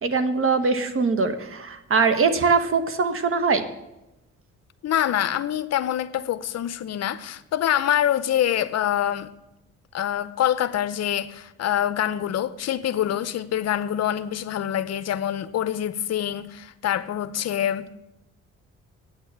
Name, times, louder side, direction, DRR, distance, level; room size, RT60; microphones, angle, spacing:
voice 1, 0.0-3.6, right 4 dB, 45° right, 1.3 m, -22 dB
voice 2, 4.8-9.3 9.9-17.9, left 11 dB, 60° left, 0.7 m, -25 dB
8.9 x 8.7 x 7.5 m
cardioid pair, 90°, 30 cm